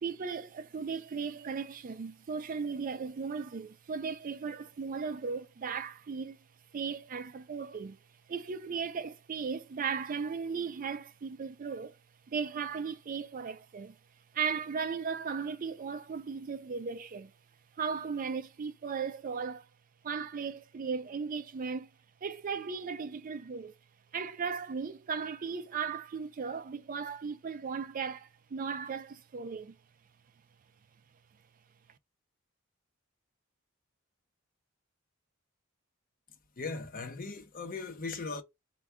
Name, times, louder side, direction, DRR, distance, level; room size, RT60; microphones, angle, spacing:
voice 1, 0.0-6.4 6.7-8.0 8.3-12.0 12.3-13.9 14.3-17.3 17.8-19.7 20.0-21.9 22.2-23.7 24.1-29.8, right 5 dB, 40° right, 0.4 m, -36 dB
voice 2, 36.6-38.4, left 4 dB, 45° left, 0.8 m, -38 dB
4.6 x 2.3 x 3.3 m
head